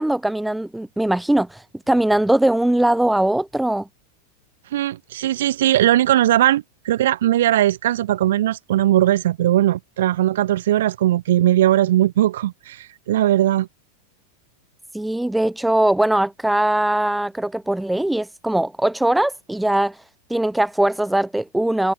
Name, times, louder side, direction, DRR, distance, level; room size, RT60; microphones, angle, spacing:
voice 1, 0.0-3.9 14.9-20.0 20.3-21.9, right 1 dB, 5° right, 1.1 m, -20 dB
voice 2, 4.7-13.7, right 13 dB, 60° right, 1.3 m, -19 dB
figure-of-eight pair, 90°, 0 cm